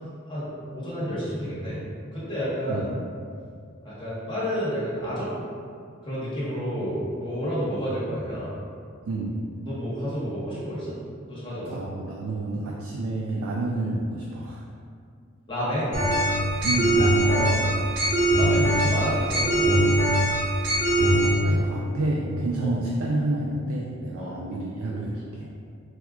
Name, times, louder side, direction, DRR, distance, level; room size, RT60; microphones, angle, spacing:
voice 1, 0.3-1.8 2.1-3.0 3.8-5.3 6.0-8.6 9.6-11.0 11.3-11.8 15.5-16.0 17.2-17.7 18.4-20.1 22.6-22.7 24.1-24.3, equal, 25° left, -10 dB, 1.0 m, -30 dB
voice 2, 9.0-9.4 11.7-14.6 16.6-17.7 21.1-25.5, right 2 dB, 85° right, -3 dB, 0.3 m, -29 dB
sound 1, 15.9-21.3, right 1 dB, 65° right, 1.0 m, -22 dB
4.1 x 2.3 x 2.3 m, 2.2 s
head